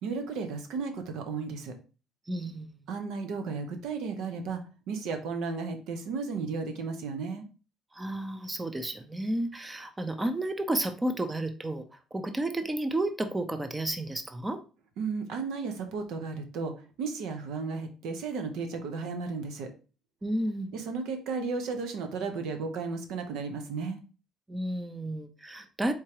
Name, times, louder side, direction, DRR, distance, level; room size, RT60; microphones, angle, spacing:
voice 1, 0.0-1.7 2.9-4.6 4.9-7.4 15.0-19.7 20.7-24.0, right 4 dB, 80° right, 6 dB, 0.8 m, -34 dB
voice 2, 2.3-2.7 7.9-14.6 20.2-20.7 24.5-25.9, right 1 dB, 15° right, 9 dB, 0.5 m, -32 dB
4.3 x 3.7 x 2.9 m, 0.34 s
cardioid pair, 105°, 0 cm